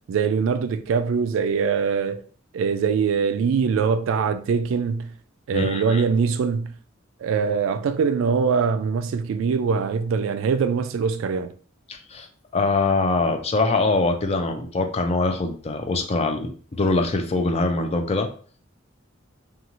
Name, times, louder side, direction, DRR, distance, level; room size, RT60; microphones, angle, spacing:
voice 1, 0.1-2.2 2.5-5.1 5.5-6.7 7.2-11.5, right 5 dB, 75° right, 0.3 m, -23 dB
voice 2, 5.5-6.0 11.9-12.3 12.5-18.3, left 3 dB, 30° left, 0.4 m, -23 dB
2.6 x 2.3 x 2.9 m
head